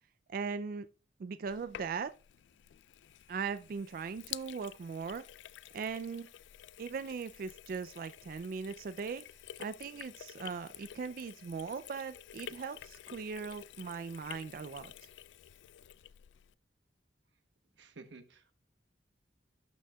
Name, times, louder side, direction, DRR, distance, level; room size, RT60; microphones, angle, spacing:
voice 1, 0.3-0.9 1.2-2.1 3.3-5.2 5.7-6.3 6.8-9.2 9.6-14.9, right 5 dB, 50° right, 0.3 m, -39 dB
Sink (filling or washing), 1.5-16.5, left 11 dB, 80° left, 0.3 m, -50 dB
voice 2, 17.8-18.6, right 3 dB, 90° right, 1.0 m, -53 dB
12.0 x 6.3 x 2.2 m
head